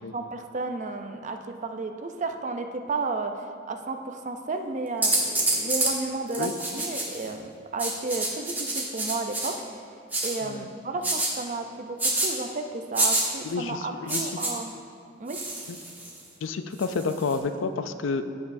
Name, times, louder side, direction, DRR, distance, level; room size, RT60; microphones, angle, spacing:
voice 1, 0.1-1.4 1.6-3.3 3.7-9.8 10.2-14.7 15.2-15.4, right 3 dB, 40° right, 6 dB, 0.5 m, -32 dB
sound 1, 5.0-5.9 6.3-7.3 7.8-9.5 10.1-10.4 11.0-11.3 12.0-12.3 12.9-13.2 14.1-14.5 15.3-16.2 16.8-17.3, right 2 dB, 10° right, 1.1 m, -27 dB
voice 2, 13.4-14.3 15.7-15.8 16.4-18.2, left 4 dB, 85° left, 9 dB, 0.4 m, -30 dB
15.0 x 5.3 x 2.6 m, 2.4 s
head